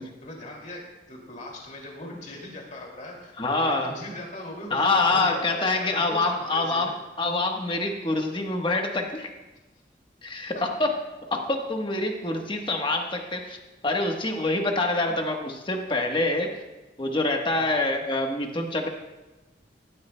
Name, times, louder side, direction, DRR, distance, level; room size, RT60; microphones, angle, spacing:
voice 1, 0.2-6.9 17.5-17.8, left 1 dB, 45° left, -1 dB, 2.5 m, -40 dB
voice 2, 3.4-3.9 4.7-6.9 7.2-9.3 10.2-10.5 10.8-10.9 11.3-13.6 13.8-16.5 17.0-18.9, left 2 dB, 30° left, 3 dB, 1.2 m, -25 dB
16.0 x 12.5 x 2.2 m, 1.1 s
head